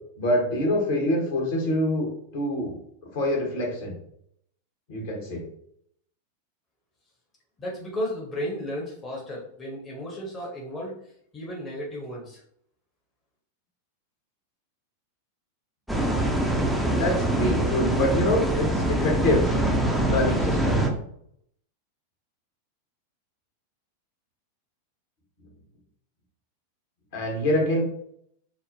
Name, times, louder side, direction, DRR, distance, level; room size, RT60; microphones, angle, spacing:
voice 1, 0.2-2.8 3.1-4.0 4.9-5.4 16.9-19.6 20.1-20.8 27.1-27.8, left 1 dB, 50° left, -1 dB, 1.0 m, -25 dB
voice 2, 7.6-10.9 11.3-12.4, equal, 20° left, -3 dB, 0.8 m, -34 dB
sound 1, 15.9-20.9, right 1 dB, ahead, 0.5 m, -24 dB
3.2 x 2.0 x 2.6 m, 0.68 s
figure-of-eight pair, 90°, 0 cm